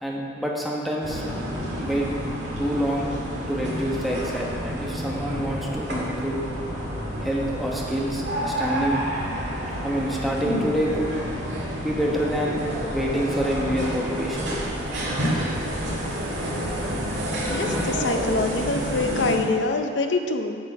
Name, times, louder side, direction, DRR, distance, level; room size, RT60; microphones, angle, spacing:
voice 1, 0.0-1.2 1.8-2.1 2.6-3.1 3.5-6.5 7.2-9.0 9.8-11.1 11.8-12.6 12.9-14.5, equal, ahead, -3 dB, 1.1 m, -27 dB
sound 1, 1.0-19.4, equal, 70° right, 2.2 m, -29 dB
voice 2, 17.5-20.6, left 3 dB, 75° left, 6 dB, 0.7 m, -25 dB
8.5 x 6.5 x 4.6 m, 2.3 s
head